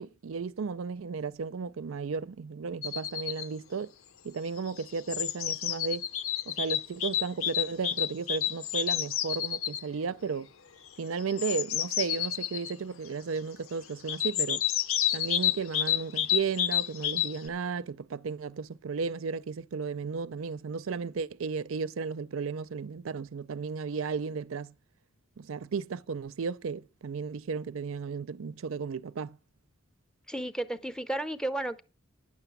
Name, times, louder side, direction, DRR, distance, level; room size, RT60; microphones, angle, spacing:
voice 1, 0.0-3.9 4.2-6.1 6.5-10.5 11.0-14.6 15.1-24.7 25.4-29.4, right 5 dB, 75° right, 0.5 m, -34 dB
sound 1, 2.8-3.5 4.6-9.8 11.2-12.7 14.1-17.5, left 11 dB, 80° left, 0.7 m, -30 dB
voice 2, 30.3-31.8, right 1 dB, 5° left, 0.6 m, -33 dB
9.6 x 6.8 x 7.1 m
head